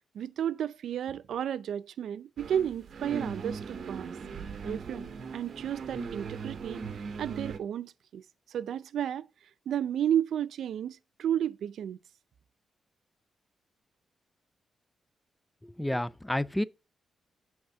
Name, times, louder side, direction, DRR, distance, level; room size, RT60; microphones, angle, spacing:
voice 1, 0.1-4.1 4.6-5.1 5.3-6.8 7.2-8.2 8.5-9.3 9.7-12.0, right 10 dB, 80° right, 0.4 m, -32 dB
sound 1, 2.4-7.6, right 5 dB, 55° right, 0.8 m, -39 dB
voice 2, 15.6-16.6, left 1 dB, 5° left, 0.3 m, -30 dB
8.0 x 3.5 x 6.6 m
cardioid pair, 110°, 0 cm